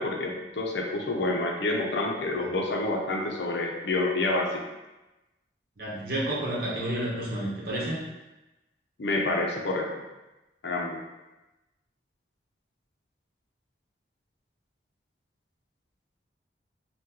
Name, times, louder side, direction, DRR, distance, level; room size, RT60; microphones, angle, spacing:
voice 1, 0.0-4.6 9.0-9.9 10.6-11.0, left 2 dB, 70° left, 0 dB, 0.5 m, -28 dB
voice 2, 5.8-8.0, right 1 dB, 55° right, -5 dB, 0.9 m, -30 dB
3.6 x 2.2 x 2.8 m, 1.0 s
head